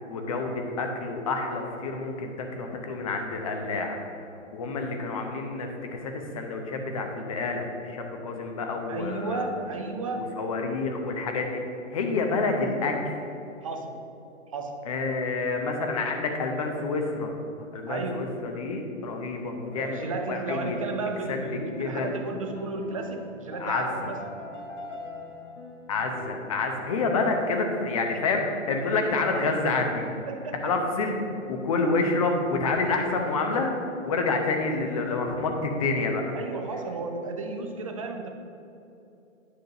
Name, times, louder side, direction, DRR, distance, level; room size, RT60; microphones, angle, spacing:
voice 1, 0.1-4.0 4.5-5.7 6.0-9.4 10.2-11.6 11.9-13.1 14.9-17.3 17.7-20.0 20.3-20.8 21.3-21.4 21.8-22.1 23.6-24.1 25.9-30.0 30.6-31.2 31.5-33.7 34.0-36.2, left 3 dB, 25° left, 3 dB, 0.8 m, -28 dB
voice 2, 8.9-10.3 13.6-14.0 14.5-14.9 17.9-18.4 19.8-24.4 28.1-28.2 28.8-28.9 29.3-29.7 30.3-30.7 36.3-38.3, right 3 dB, 25° right, 5 dB, 0.6 m, -33 dB
sound 1, 19.7-26.3, left 2 dB, 65° left, 1.6 m, -41 dB
9.6 x 3.9 x 6.4 m, 2.8 s
figure-of-eight pair, 145°, 40 cm